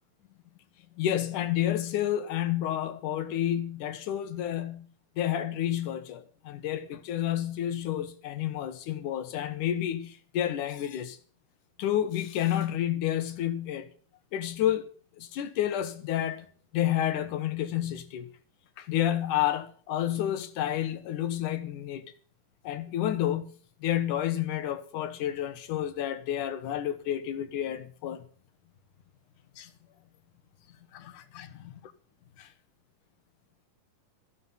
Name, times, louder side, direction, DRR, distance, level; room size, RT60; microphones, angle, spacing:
voice 1, 1.0-4.9 5.2-11.2 11.8-13.9 14.3-14.9 15.2-16.5 16.7-18.3 18.8-22.1 22.6-23.5 23.8-28.2 29.6-29.7 30.9-31.5 32.4-32.5, left 11 dB, 70° left, 2.7 m, -30 dB
14.0 x 11.5 x 5.7 m
omnidirectional pair, 3.9 m